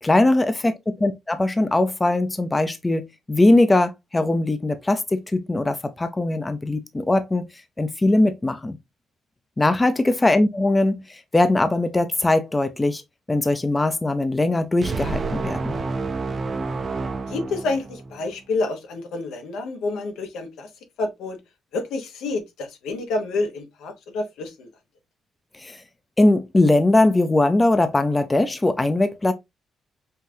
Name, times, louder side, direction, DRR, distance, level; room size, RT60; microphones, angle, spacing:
voice 1, 0.0-7.5 7.8-8.8 9.6-13.0 13.3-15.8 25.6-25.8 26.2-29.3, left 2 dB, 20° left, 0.6 m, -20 dB
sound 1, 14.8-18.3, right 3 dB, 35° right, 0.6 m, -29 dB
voice 2, 17.3-20.7 21.0-21.4 21.7-24.7, left 3 dB, 85° left, 1.1 m, -28 dB
5.6 x 2.5 x 2.8 m
cardioid pair, 90°, 0 cm